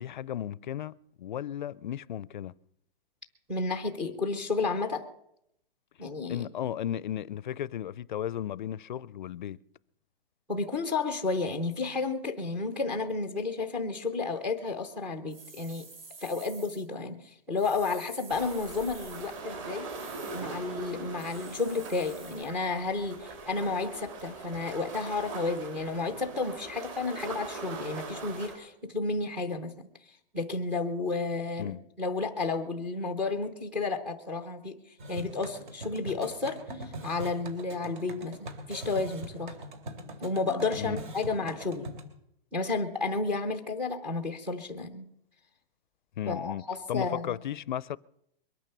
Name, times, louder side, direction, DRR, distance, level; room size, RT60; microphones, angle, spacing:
voice 1, 0.0-2.5 6.3-9.6 31.6-31.8 40.8-41.0 46.2-46.6 46.9-48.0, left 10 dB, 55° left, 0.5 m, -35 dB
voice 2, 3.5-5.1 6.0-6.5 10.5-15.9 16.2-19.9 20.3-29.9 30.3-34.8 35.1-39.6 40.2-41.9 42.5-45.1 46.3-47.4, left 3 dB, 5° right, 0.5 m, -32 dB
sound 1, 15.3-16.9 17.6-19.4 19.9-20.6 21.2-22.5, right 4 dB, 75° right, 4.0 m, -50 dB
sound 2, 18.3-28.5, right 3 dB, 35° right, 3.7 m, -41 dB
sound 3, 35.0-42.0, right 1 dB, 55° right, 3.0 m, -42 dB
22.0 x 9.2 x 6.7 m
hypercardioid pair, 170°, 29 cm